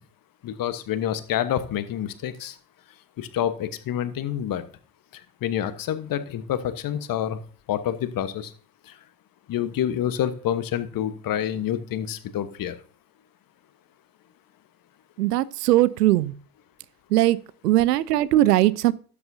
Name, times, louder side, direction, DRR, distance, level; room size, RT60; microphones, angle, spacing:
voice 1, 0.4-2.6 3.2-4.6 5.4-7.4 7.7-8.5 8.9-9.0 9.5-12.8, left 10 dB, 45° left, 1.2 m, -27 dB
voice 2, 15.2-16.3 17.1-17.4 17.6-18.9, right 15 dB, 85° right, 0.6 m, -19 dB
12.5 x 8.6 x 2.7 m
hypercardioid pair, 65°, 46 cm